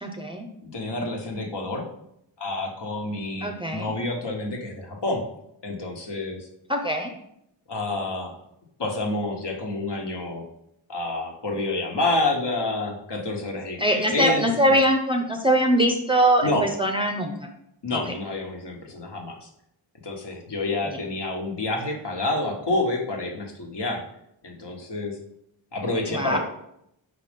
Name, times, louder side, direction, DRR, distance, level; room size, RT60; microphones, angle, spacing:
voice 1, 0.0-0.5 3.4-3.9 6.7-7.1 13.8-17.5 17.9-18.0 20.9-21.0 26.1-26.4, right 1 dB, 10° right, 2 dB, 0.6 m, -22 dB
voice 2, 0.6-1.8 2.4-5.2 5.6-6.5 7.7-8.3 8.8-10.5 10.9-14.7 16.4-16.6 17.8-19.5 20.0-24.0 24.4-25.2 25.7-26.4, left 2 dB, 60° left, 1 dB, 1.3 m, -28 dB
5.2 x 4.2 x 5.1 m, 0.76 s
wide cardioid pair, 145°, 47 cm